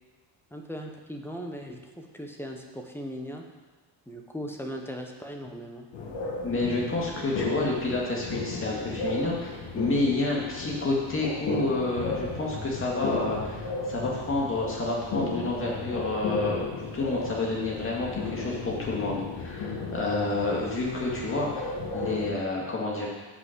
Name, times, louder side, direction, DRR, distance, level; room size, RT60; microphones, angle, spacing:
voice 1, 0.5-3.4 4.1-5.9, equal, 5° left, 2 dB, 0.8 m, -38 dB
sound 1, 5.9-22.3, left 3 dB, 85° left, 1.8 m, -34 dB
voice 2, 6.4-23.1, left 2 dB, 30° left, -3 dB, 2.1 m, -29 dB
6.9 x 5.7 x 6.7 m, 1.3 s
cardioid pair, 145°, 45 cm